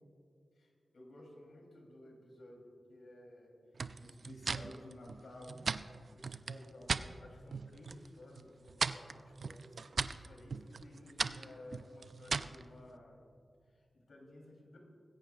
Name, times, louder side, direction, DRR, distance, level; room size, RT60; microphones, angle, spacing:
voice 1, 0.5-3.6 3.9-5.6 6.1-9.8 10.1-13.2 13.7-14.8, left 1 dB, 85° left, 0 dB, 2.9 m, -54 dB
sound 1, 3.8-7.1 7.5-8.1 8.3-12.6, right 4 dB, 65° right, 0.4 m, -38 dB
20.0 x 16.5 x 2.3 m, 2.3 s
wide cardioid pair, 75°, 0 cm